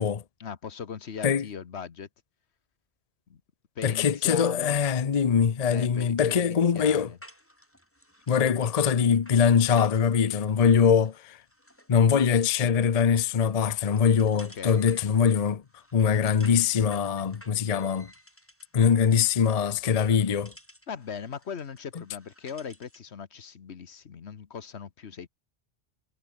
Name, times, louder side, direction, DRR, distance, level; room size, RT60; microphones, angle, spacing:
voice 1, 0.4-2.1 3.3-3.4 3.7-4.8 5.7-7.2 14.6-14.9 20.9-25.3, left 7 dB, 70° left, 1.4 m, -39 dB
voice 2, 3.8-7.1 8.3-11.4 11.9-15.6 15.9-18.1 18.7-20.5, left 7 dB, 40° left, 0.8 m, -23 dB
sound 1, 6.7-23.1, equal, 10° left, 8.1 m, -55 dB
omnidirectional pair, 1.2 m